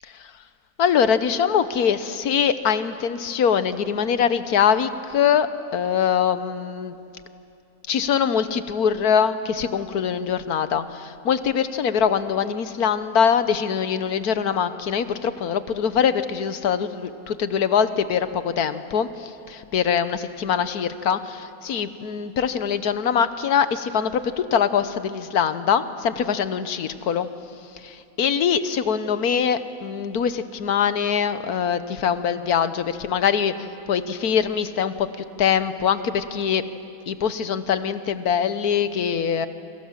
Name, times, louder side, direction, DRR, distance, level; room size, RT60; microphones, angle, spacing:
voice 1, 0.8-5.5 5.7-7.0 7.9-27.3 27.8-33.5 33.9-35.1 35.4-36.6 37.1-39.5, left 7 dB, 90° left, 12 dB, 1.6 m, -23 dB
28.5 x 26.0 x 7.4 m, 2.9 s
omnidirectional pair, 1.6 m